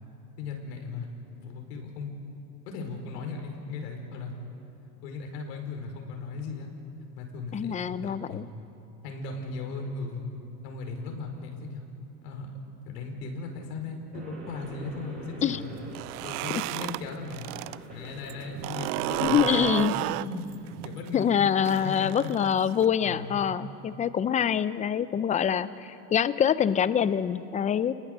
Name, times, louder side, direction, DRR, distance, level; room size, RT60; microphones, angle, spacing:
voice 1, 0.4-1.1 1.4-2.1 2.7-4.3 5.0-6.7 7.2-8.4 9.0-10.3 10.6-11.8 12.2-12.5 12.8-15.7 16.2-17.5 17.9-22.3 23.0-23.6, left 4 dB, 70° left, 3 dB, 5.0 m, -37 dB
voice 2, 7.5-8.5 15.4-15.6 16.5-16.6 19.2-20.0 21.1-27.9, left 8 dB, 15° left, 15 dB, 0.5 m, -25 dB
sound 1, 14.1-20.1, right 2 dB, 20° right, 7.9 m, -46 dB
sound 2, 15.8-17.8 18.1-22.9, right 20 dB, 65° right, 0.6 m, -32 dB
30.0 x 20.0 x 6.7 m, 2.8 s
supercardioid pair, 115°, 49 cm